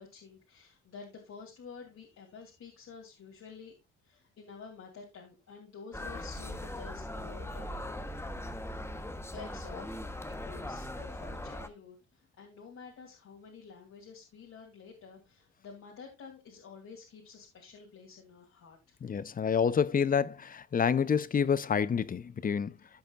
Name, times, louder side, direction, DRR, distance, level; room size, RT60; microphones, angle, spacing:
voice 1, 0.0-3.7 4.0-8.1 9.3-9.9 10.2-19.0, left 5 dB, 60° left, 2.6 m, -50 dB
sound 1, 5.9-11.7, left 1 dB, 10° left, 0.9 m, -40 dB
voice 2, 19.0-22.8, left 7 dB, 30° left, 0.5 m, -28 dB
15.0 x 5.4 x 2.3 m
cardioid pair, 90°, 30 cm